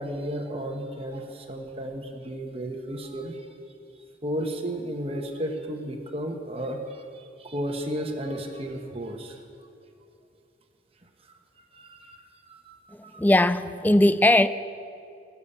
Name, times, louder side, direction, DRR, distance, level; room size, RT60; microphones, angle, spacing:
voice 1, 0.0-3.5 4.2-9.4 11.7-12.2 12.5-13.2, equal, 30° right, 1.1 m, -33 dB
voice 2, 12.9-14.5, left 1 dB, 10° left, 0.3 m, -20 dB
20.0 x 7.1 x 8.4 m
head